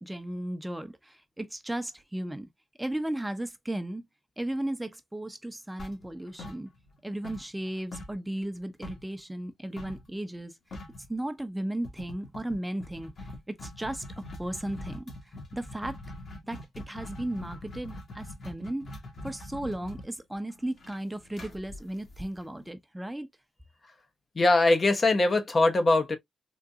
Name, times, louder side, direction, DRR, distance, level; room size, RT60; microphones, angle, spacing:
voice 1, 0.0-2.5 2.8-4.1 4.4-6.7 7.0-10.6 11.1-13.3 13.6-16.0 16.4-18.9 19.2-23.3, right 1 dB, 10° right, 0.7 m, -35 dB
sound 1, 5.8-7.0 7.2-9.1 9.8-10.1 10.4-10.5 10.7-11.1 11.8-22.6, left 1 dB, 60° left, 1.5 m, -43 dB
voice 2, 24.4-26.2, left 2 dB, 45° left, 0.8 m, -22 dB
3.8 x 2.6 x 2.3 m
cardioid pair, 65°, 0 cm